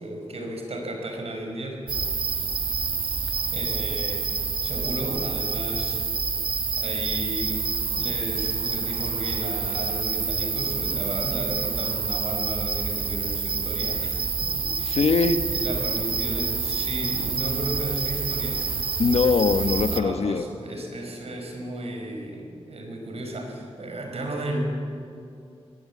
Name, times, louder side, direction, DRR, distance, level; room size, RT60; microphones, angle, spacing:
voice 1, 0.0-1.8 3.1-6.0 6.8-15.0 15.5-18.6 19.9-24.6, right 1 dB, 70° right, 3 dB, 5.3 m, -34 dB
sound 1, 1.9-20.0, right 5 dB, 55° right, 1.1 m, -28 dB
voice 2, 14.8-15.4 19.0-20.5, left 4 dB, 70° left, 9 dB, 1.1 m, -22 dB
24.0 x 18.5 x 8.5 m, 2.4 s
wide cardioid pair, 150°, 11 cm